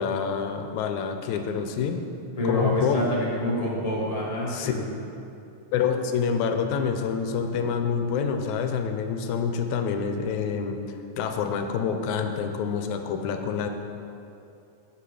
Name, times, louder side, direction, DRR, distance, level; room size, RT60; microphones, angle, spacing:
voice 1, 0.0-2.0 2.5-3.0 4.5-4.9 5.7-13.7, left 6 dB, 80° left, 5 dB, 2.0 m, -27 dB
voice 2, 2.4-4.9, left 1 dB, 40° left, -6 dB, 0.5 m, -27 dB
9.3 x 7.4 x 4.9 m, 2.7 s
omnidirectional pair, 3.5 m